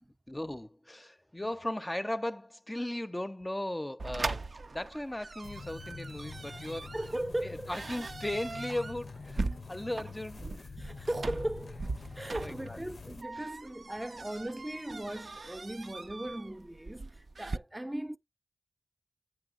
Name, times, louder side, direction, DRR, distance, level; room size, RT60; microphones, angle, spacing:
voice 1, 0.3-6.9 7.4-10.7 11.4-11.5 12.3-12.8 13.4-13.5, left 1 dB, 20° left, 0.6 m, -37 dB
sound 1, 4.0-17.6, right 3 dB, 70° right, 0.4 m, -40 dB
sound 2, 5.4-13.2, left 4 dB, 75° left, 0.5 m, -46 dB
voice 2, 6.9-7.7 10.8-18.2, right 1 dB, 20° right, 0.6 m, -38 dB
8.9 x 3.1 x 6.3 m
cardioid pair, 40°, 0 cm